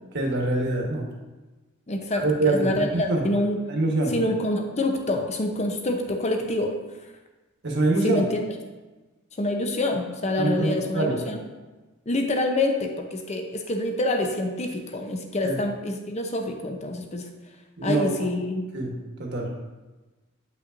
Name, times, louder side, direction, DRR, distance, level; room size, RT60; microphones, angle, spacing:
voice 1, 0.1-1.1 2.1-3.2 3.7-4.1 7.6-8.2 10.4-11.1 15.4-15.6 17.8-18.3 18.7-18.9 19.2-19.5, right 2 dB, 55° right, 0 dB, 1.2 m, -24 dB
voice 2, 1.9-3.6 4.1-6.7 8.0-8.5 9.3-11.4 12.1-17.3 17.8-18.7, left 1 dB, 30° left, 4 dB, 0.6 m, -26 dB
8.2 x 5.6 x 2.5 m, 1.2 s
head